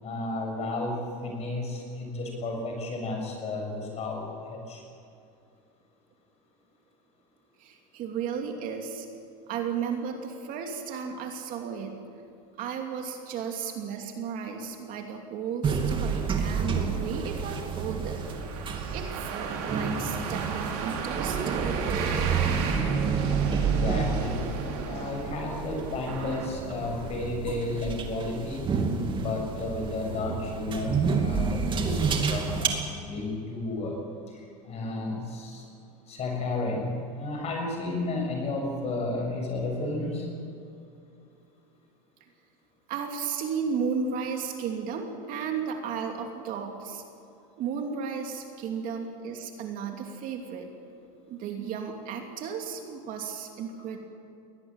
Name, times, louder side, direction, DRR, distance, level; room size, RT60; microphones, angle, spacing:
voice 1, 0.0-4.8 23.6-24.5 24.8-28.8 29.2-34.0 34.3-35.7 36.1-40.3, left 2 dB, 35° left, 2 dB, 7.0 m, -32 dB
voice 2, 7.6-9.1 9.5-12.0 12.6-18.2 18.9-22.1 42.9-47.0 47.6-50.7 51.3-54.0, right 6 dB, 45° right, 3 dB, 2.8 m, -34 dB
sound 1, 15.6-32.7, right 5 dB, 25° right, 2.5 m, -29 dB
sound 2, 16.0-27.2, right 6 dB, 70° right, 4.7 m, -37 dB
22.0 x 18.0 x 9.0 m, 2.5 s
supercardioid pair, 135°, 20 cm